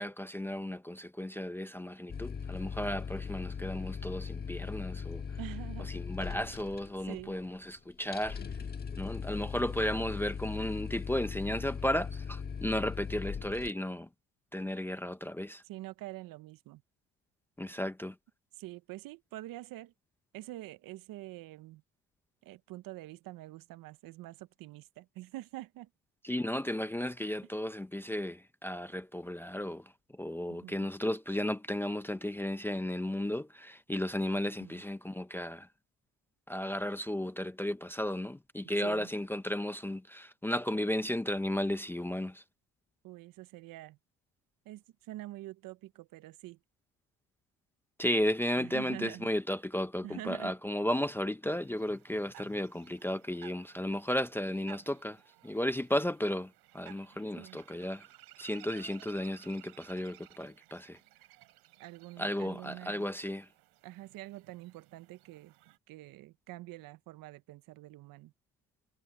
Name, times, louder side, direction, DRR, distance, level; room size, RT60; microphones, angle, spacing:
voice 1, 0.0-5.2 5.9-8.4 9.0-14.1 14.5-15.6 17.6-18.2 26.2-29.9 30.2-35.7 36.5-42.4 48.0-58.0 58.4-61.0 62.2-63.5, left 1 dB, 5° left, 0.5 m, -34 dB
sound 1, 2.1-13.7, left 6 dB, 25° left, 1.4 m, -39 dB
voice 2, 5.4-5.9 7.0-7.3 15.6-16.8 18.6-19.9 20.3-21.8 22.4-25.9 30.5-30.9 34.6-34.8 38.8-39.1 43.0-44.0 44.7-46.6 48.6-49.3 50.0-50.5 57.4-57.6 61.8-63.1 63.8-65.5 65.9-68.3, right 16 dB, 60° right, 0.7 m, -46 dB
sound 2, 51.5-65.8, right 18 dB, 90° right, 3.0 m, -58 dB
cardioid pair, 160°, 38 cm